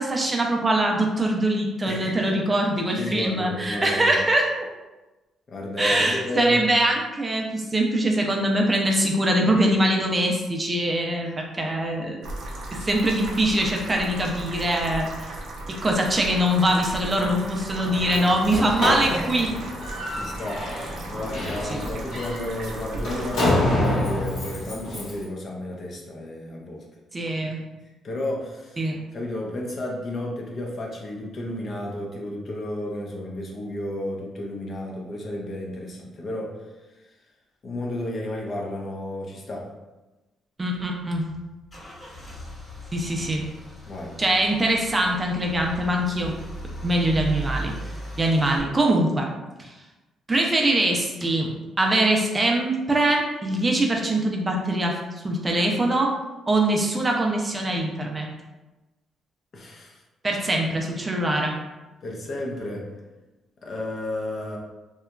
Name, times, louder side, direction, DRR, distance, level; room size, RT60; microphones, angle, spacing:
voice 1, 0.0-4.5 5.8-12.2 12.7-15.1 15.7-19.5 21.7-21.8 27.1-27.6 28.8-29.0 40.6-41.2 42.9-43.4 44.2-46.3 46.8-47.7 48.2-49.3 49.6-49.7 50.3-55.0 55.2-56.1 56.5-58.3 60.2-61.5, right 1 dB, 25° right, 0 dB, 0.4 m, -23 dB
voice 2, 1.8-2.3 3.0-4.2 5.5-6.6 19.1-19.3 20.1-26.9 28.0-28.8 29.1-36.7 37.0-37.1 37.6-39.7 43.9-44.2 59.5-60.0 62.0-62.9 63.6-64.6, left 1 dB, 45° left, -1 dB, 0.6 m, -32 dB
sound 1, 12.2-23.5, right 1 dB, 70° right, 0.5 m, -36 dB
Slam, 17.8-25.2, left 1 dB, 85° left, 1.2 m, -28 dB
Car / Engine starting / Idling, 40.8-48.6, right 1 dB, 25° left, 1.1 m, -37 dB
2.8 x 2.3 x 2.2 m, 1.1 s
cardioid pair, 90°, 0 cm